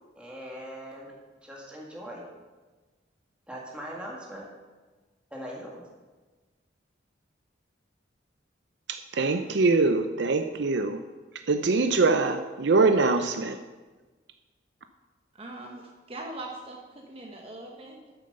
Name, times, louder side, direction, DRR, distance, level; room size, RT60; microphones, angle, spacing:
voice 1, 0.2-1.1 1.4-2.2 3.5-4.5 5.3-5.8, equal, 5° right, -4 dB, 1.9 m, -40 dB
voice 2, 8.9-11.0 11.5-13.6, right 3 dB, 65° right, 8 dB, 0.5 m, -23 dB
voice 3, 15.4-18.2, right 2 dB, 30° right, 0 dB, 1.0 m, -41 dB
9.1 x 6.7 x 6.7 m, 1.3 s
head